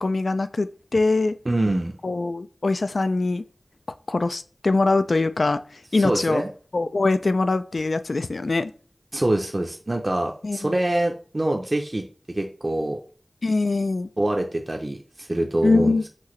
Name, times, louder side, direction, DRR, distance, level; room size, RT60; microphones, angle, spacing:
voice 1, 0.0-1.4 2.0-3.4 4.1-6.4 6.7-8.7 10.4-10.8 13.4-14.1 15.6-16.0, left 3 dB, 80° left, 0.3 m, -23 dB
voice 2, 1.5-2.0 6.0-6.5 9.1-13.0 14.2-16.1, right 1 dB, 35° right, 0.6 m, -25 dB
5.9 x 2.7 x 3.1 m
wide cardioid pair, 65°, 0 cm